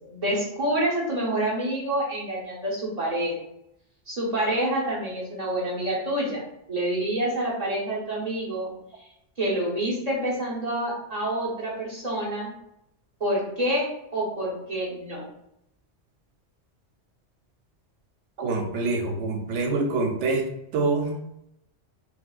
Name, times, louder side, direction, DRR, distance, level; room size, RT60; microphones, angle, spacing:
voice 1, 0.0-3.4 4.1-6.4 6.7-8.7 9.4-12.5 13.2-13.9 14.1-15.2, right 1 dB, 35° right, -5 dB, 1.0 m, -27 dB
voice 2, 18.4-20.5 20.7-21.1, right 3 dB, 85° right, 2 dB, 0.9 m, -25 dB
4.5 x 2.0 x 2.3 m, 0.81 s
omnidirectional pair, 1.2 m